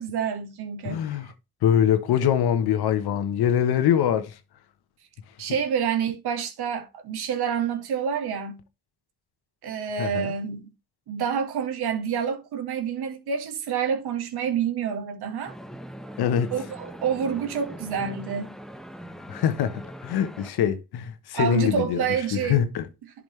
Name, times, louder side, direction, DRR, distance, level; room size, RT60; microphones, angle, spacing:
voice 1, 0.0-1.1 5.4-8.6 9.6-10.7 11.1-15.5 16.5-18.5 21.3-22.6, right 7 dB, 80° right, 1.7 m, -28 dB
voice 2, 0.8-1.3 1.6-4.4 10.0-10.3 16.2-16.5 19.3-22.0 22.3-22.9, left 9 dB, 80° left, 1.1 m, -23 dB
sound 1, 15.5-20.5, equal, ahead, 1.0 m, -41 dB
11.0 x 5.1 x 3.3 m
supercardioid pair, 50°, 38 cm